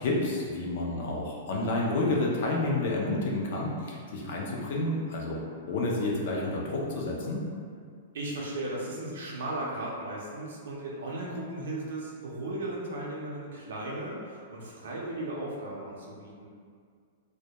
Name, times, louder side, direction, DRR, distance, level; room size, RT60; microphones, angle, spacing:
voice 1, 0.0-7.4, left 2 dB, 45° left, -2 dB, 0.4 m, -30 dB
voice 2, 8.1-16.5, right 1 dB, 75° right, -4 dB, 0.4 m, -36 dB
2.1 x 2.0 x 2.7 m, 2.1 s
supercardioid pair, 175°, 0 cm